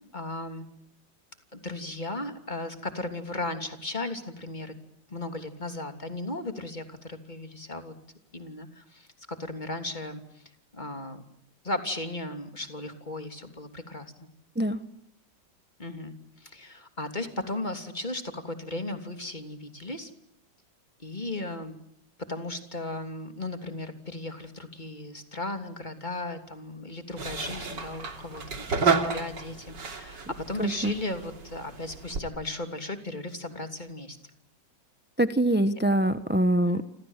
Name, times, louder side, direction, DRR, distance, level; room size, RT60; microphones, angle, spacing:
voice 1, 0.1-0.7 1.5-4.8 5.1-7.9 8.3-10.4 10.7-11.2 11.6-14.3 15.8-20.1 21.0-21.7 22.2-34.2 36.6-36.8, left 2 dB, 20° left, 6 dB, 3.2 m, -36 dB
sound 1, 27.2-32.2, right 5 dB, 60° right, 3.6 m, -31 dB
voice 2, 30.6-30.9 35.2-36.8, right 1 dB, 10° right, 10 dB, 0.7 m, -24 dB
30.0 x 26.5 x 7.4 m, 0.72 s
omnidirectional pair, 2.2 m